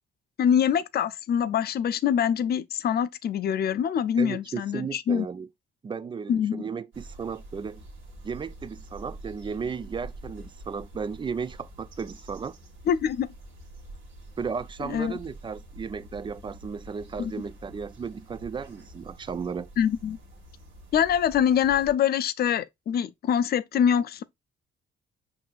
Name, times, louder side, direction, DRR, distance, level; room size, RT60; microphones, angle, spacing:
voice 1, 0.4-5.3 6.3-6.6 12.9-13.3 14.8-15.2 17.2-17.3 19.8-20.2 20.9-24.2, left 8 dB, 50° left, 0.4 m, -24 dB
voice 2, 4.2-5.5 5.8-7.8 8.2-12.6 14.4-19.7, right 6 dB, 25° right, 0.3 m, -35 dB
sound 1, 6.9-21.9, right 1 dB, 75° right, 1.4 m, -46 dB
5.9 x 2.7 x 2.3 m
cardioid pair, 90°, 20 cm